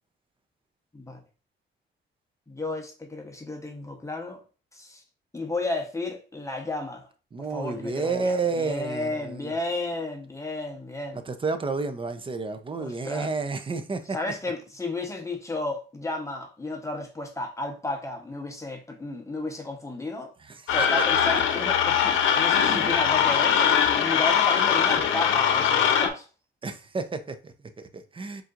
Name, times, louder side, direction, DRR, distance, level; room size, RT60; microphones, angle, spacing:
voice 1, 2.5-4.4 4.7-5.0 5.3-7.1 7.5-11.2 12.8-13.3 14.1-20.3 20.7-26.3, left 2 dB, 15° left, 1.0 m, -33 dB
voice 2, 7.3-9.5 11.3-14.2 20.5-20.9 22.6-22.9 26.6-28.4, right 4 dB, 25° right, 0.7 m, -31 dB
sound 1, 20.7-26.1, left 8 dB, 80° left, 0.7 m, -22 dB
4.3 x 3.9 x 2.5 m
cardioid pair, 90°, 20 cm